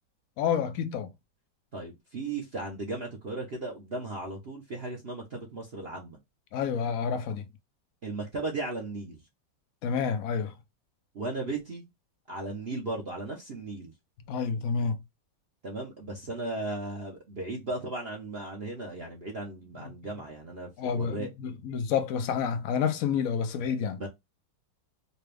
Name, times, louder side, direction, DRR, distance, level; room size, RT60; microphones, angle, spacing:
voice 1, 0.4-1.1 6.5-7.4 9.8-10.5 14.3-15.0 20.8-24.0, left 6 dB, 70° left, 0.8 m, -29 dB
voice 2, 1.7-6.2 8.0-9.2 11.1-11.9 12.3-13.9 15.6-21.3 23.9-24.1, right 2 dB, 45° right, 0.8 m, -36 dB
4.1 x 2.3 x 3.3 m
omnidirectional pair, 2.0 m